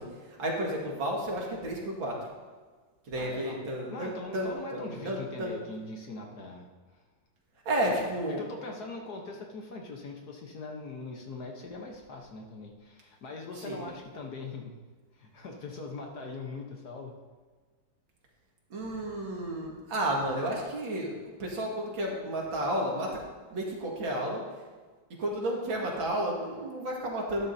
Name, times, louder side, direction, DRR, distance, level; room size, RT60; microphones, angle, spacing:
voice 1, 0.0-2.2 3.1-5.5 7.7-8.4 13.6-13.9 18.7-21.1 21.4-23.2 23.5-24.4 25.2-27.5, right 1 dB, 70° right, -2 dB, 2.6 m, -32 dB
voice 2, 3.2-3.6 3.9-7.0 7.9-14.7 15.1-17.2, left 3 dB, 55° left, 1 dB, 1.4 m, -41 dB
12.5 x 11.5 x 2.7 m, 1.4 s
omnidirectional pair, 2.2 m